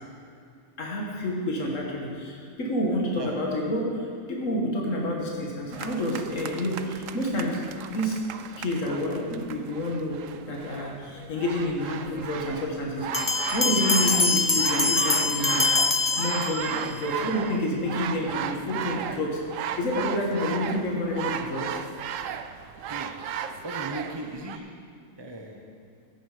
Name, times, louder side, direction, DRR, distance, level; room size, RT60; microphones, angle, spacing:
voice 1, 0.8-7.6 7.9-8.2 8.6-10.2 10.4-13.1 13.5-15.6 16.2-21.8, left 1 dB, 80° left, -2 dB, 1.9 m, -29 dB
sound 1, 5.7-24.6, right 8 dB, 85° right, 1.0 m, -35 dB
sound 2, 13.1-16.9, left 4 dB, 30° left, 0.4 m, -24 dB
voice 2, 22.9-23.3 23.6-24.6 25.2-25.6, right 1 dB, 20° right, 1 dB, 0.9 m, -37 dB
16.0 x 8.9 x 5.0 m, 2.4 s
omnidirectional pair, 1.3 m